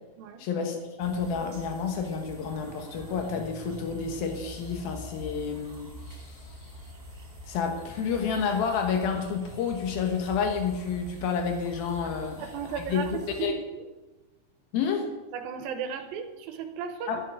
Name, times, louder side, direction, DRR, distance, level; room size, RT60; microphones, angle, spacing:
voice 1, 0.4-6.7 7.5-12.5 12.8-13.0 13.4-13.5 14.7-15.1 17.1-17.2, left 6 dB, 85° left, 3 dB, 3.0 m, -30 dB
sound 1, 1.0-13.4, equal, 20° right, 3.1 m, -45 dB
voice 2, 12.0-13.8 15.3-17.2, right 7 dB, 90° right, 6 dB, 2.7 m, -36 dB
12.0 x 9.6 x 6.3 m, 1.1 s
omnidirectional pair, 4.1 m